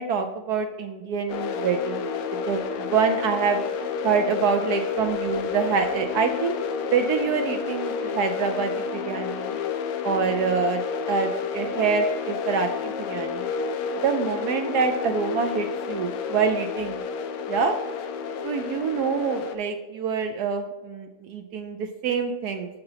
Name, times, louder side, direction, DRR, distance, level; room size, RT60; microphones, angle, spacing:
voice 1, 0.0-2.0 2.3-3.6 4.0-6.6 6.9-9.5 10.0-13.5 14.0-17.0 17.5-17.8 18.4-22.7, right 5 dB, 90° right, 6 dB, 0.8 m, -26 dB
sound 1, 1.3-19.6, left 6 dB, 85° left, 1.6 m, -30 dB
6.7 x 5.7 x 5.7 m, 1.2 s
omnidirectional pair, 2.4 m